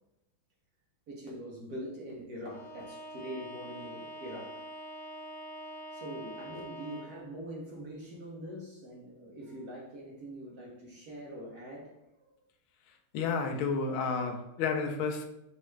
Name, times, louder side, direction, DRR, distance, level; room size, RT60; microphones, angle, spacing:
voice 1, 1.1-4.6 5.9-12.3, equal, 60° right, -3 dB, 1.0 m, -43 dB
Bowed string instrument, 2.4-7.3, right 1 dB, 35° right, 1.2 m, -45 dB
voice 2, 13.1-15.3, left 5 dB, 80° left, 3 dB, 1.4 m, -31 dB
5.3 x 2.4 x 3.1 m, 0.90 s
omnidirectional pair, 2.2 m